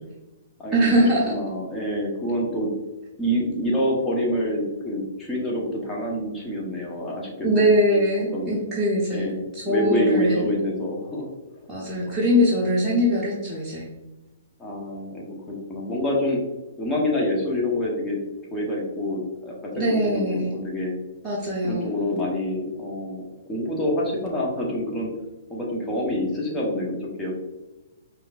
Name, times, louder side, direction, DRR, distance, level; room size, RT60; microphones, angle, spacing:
voice 1, 0.7-1.3 7.4-9.3 9.5-10.5 11.7-13.8 19.7-20.5 21.2-21.9, equal, 10° right, -8 dB, 0.9 m, -22 dB
voice 2, 1.3-2.7 3.2-8.0 8.3-8.5 9.1-11.3 11.6-11.7 12.1-12.2 14.6-16.4 16.8-18.2 18.5-20.9 21.6-25.1 25.5-27.3, left 1 dB, 15° left, -3 dB, 1.1 m, -27 dB
4.9 x 2.9 x 2.4 m, 1.1 s
figure-of-eight pair, 120°, 0 cm